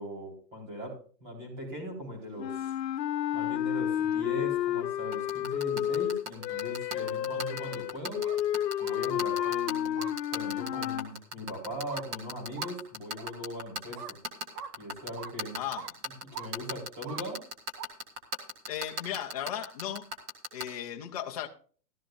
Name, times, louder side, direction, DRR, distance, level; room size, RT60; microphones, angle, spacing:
voice 1, 0.0-2.7 3.3-8.2 8.8-14.2 14.8-15.6 16.3-17.4, equal, 30° right, 4.5 m, -40 dB
sound 1, 2.4-11.1, left 11 dB, 90° left, 0.8 m, -31 dB
sound 2, 5.1-20.6, equal, 15° right, 0.8 m, -35 dB
sound 3, 8.1-8.4 8.8-8.9 9.4-9.5 9.9-10.1 10.7-10.8 11.9-12.1 12.5-12.7 13.2-13.3 13.9-14.1 14.5-14.7 15.1-15.3 15.7-15.9 16.3-16.5 17.0-17.2 17.8-17.9, right 7 dB, 70° right, 1.2 m, -42 dB
voice 2, 15.5-16.0 18.7-20.1 20.5-21.5, left 10 dB, 25° left, 0.6 m, -36 dB
14.5 x 12.5 x 2.6 m
hypercardioid pair, 175°, 49 cm